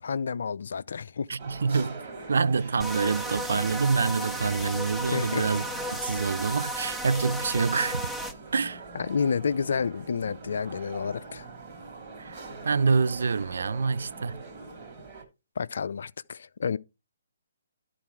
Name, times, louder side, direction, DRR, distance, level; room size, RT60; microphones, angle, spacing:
voice 1, 0.0-1.3 5.1-5.4 8.9-11.5 15.6-16.8, left 6 dB, 60° left, 0.5 m, -30 dB
voice 2, 1.3-2.0 2.3-5.7 6.0-8.1 8.5-8.8 12.2-14.4, right 5 dB, 65° right, 0.4 m, -26 dB
sound 1, 1.4-15.2, right 4 dB, 35° right, 2.8 m, -43 dB
sound 2, 2.8-8.3, equal, ahead, 0.7 m, -34 dB
12.5 x 4.2 x 4.6 m
figure-of-eight pair, 140°, 0 cm